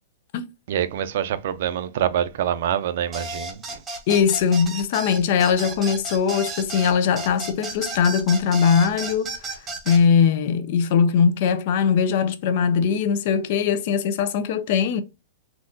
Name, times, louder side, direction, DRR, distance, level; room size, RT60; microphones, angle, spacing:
voice 1, 0.7-3.8, right 10 dB, 55° right, 0.5 m, -25 dB
sound 1, 3.1-10.0, right 3 dB, 15° right, 0.7 m, -33 dB
voice 2, 4.1-9.6 9.9-15.0, left 6 dB, 50° left, 0.5 m, -20 dB
3.8 x 2.4 x 2.5 m
hypercardioid pair, 155°, 0 cm